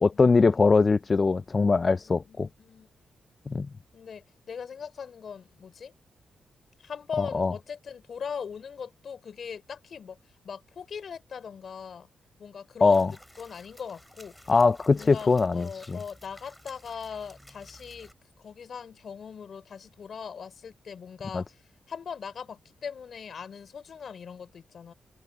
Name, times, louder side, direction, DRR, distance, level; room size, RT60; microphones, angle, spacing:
voice 1, 0.0-2.5 3.5-3.7 7.2-7.5 12.8-13.1 14.5-16.0 21.3-21.4, left 4 dB, 35° left, 0.3 m, -22 dB
voice 2, 1.9-2.9 3.9-5.9 6.8-10.2 10.4-12.1 12.4-14.3 14.9-18.1 18.4-21.6 21.9-24.9, left 6 dB, 60° left, 3.5 m, -40 dB
sound 1, 12.8-18.1, equal, ahead, 2.6 m, -53 dB
open air
cardioid pair, 105°, 0 cm